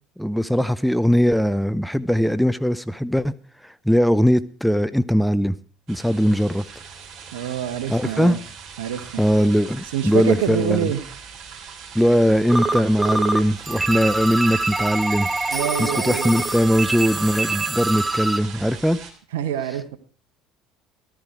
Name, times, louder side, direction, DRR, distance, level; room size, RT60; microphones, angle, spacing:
voice 1, 0.2-3.3 3.6-5.6 5.9-6.6 7.9-8.4 9.2-10.9 11.9-15.3 15.8-19.0, equal, ahead, 0.7 m, -20 dB
sound 1, 5.9-19.1, right 6 dB, 55° right, 3.2 m, -40 dB
voice 2, 7.3-8.4 8.8-9.2 9.9-11.0 15.5-16.3 19.3-20.0, right 9 dB, 85° right, 1.5 m, -26 dB
sound 2, 12.5-13.4 13.6-18.4, right 3 dB, 15° right, 1.1 m, -25 dB
14.5 x 13.0 x 4.7 m
hypercardioid pair, 75°, 0 cm